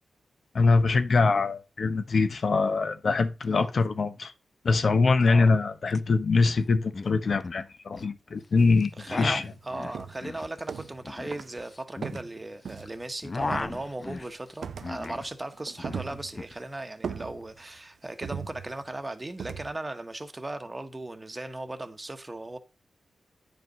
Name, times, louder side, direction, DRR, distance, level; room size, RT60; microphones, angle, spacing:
voice 1, 0.5-4.3 4.6-9.5, left 4 dB, 60° left, 0.9 m, -23 dB
voice 2, 5.3-5.6 9.0-22.6, right 2 dB, 25° right, 1.1 m, -37 dB
sound 1, 5.9-6.0 6.2-6.6 6.9-8.1 8.8-12.8 13.0-15.3 15.6-16.5, left 3 dB, 40° left, 0.3 m, -36 dB
sound 2, 8.6-8.8 9.2-9.6 9.9-11.1 11.3-11.6 12.0-13.1 13.4-14.1 14.6-15.2 15.5-16.6 17.0-17.8 18.2-18.9 19.4-19.7, right 6 dB, 75° right, 0.5 m, -39 dB
9.5 x 5.3 x 3.9 m
cardioid pair, 70°, 0 cm